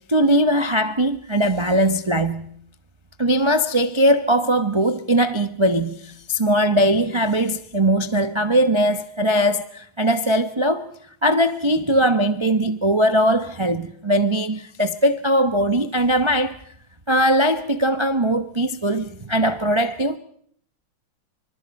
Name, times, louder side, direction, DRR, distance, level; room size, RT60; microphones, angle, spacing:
voice 1, 0.1-2.4 3.2-10.9 11.2-16.6 17.1-20.2, equal, 25° right, 0.5 m, -20 dB
29.0 x 25.5 x 5.4 m
omnidirectional pair, 2.3 m